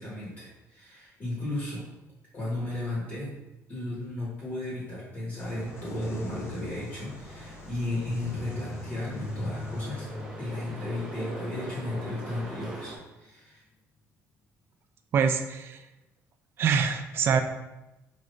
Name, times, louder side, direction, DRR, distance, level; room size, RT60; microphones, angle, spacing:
voice 1, 0.0-1.9 2.3-3.3 3.7-10.1 10.4-13.6, left 1 dB, 30° left, -7 dB, 1.2 m, -34 dB
sound 1, 5.4-13.0, left 2 dB, 50° left, 0.5 m, -41 dB
sound 2, 5.4-13.0, right 1 dB, 10° right, 0.7 m, -44 dB
voice 2, 15.1-15.8 16.6-17.4, right 6 dB, 45° right, 7 dB, 0.3 m, -24 dB
4.7 x 2.5 x 3.2 m, 0.97 s
cardioid pair, 155°, 6 cm